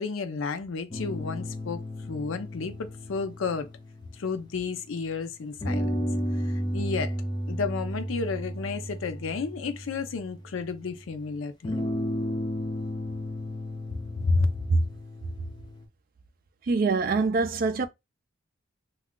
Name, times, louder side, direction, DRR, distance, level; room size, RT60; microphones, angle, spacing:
voice 1, 0.0-1.8 2.1-3.7 4.2-6.1 6.7-7.1 7.5-11.9 14.2-14.5, left 4 dB, 80° left, 0.5 m, -31 dB
sound 1, 0.9-4.8 5.6-10.7 11.6-15.8, equal, 25° left, 0.5 m, -33 dB
voice 2, 16.6-17.9, right 3 dB, 45° right, 0.4 m, -24 dB
2.4 x 2.2 x 3.6 m
head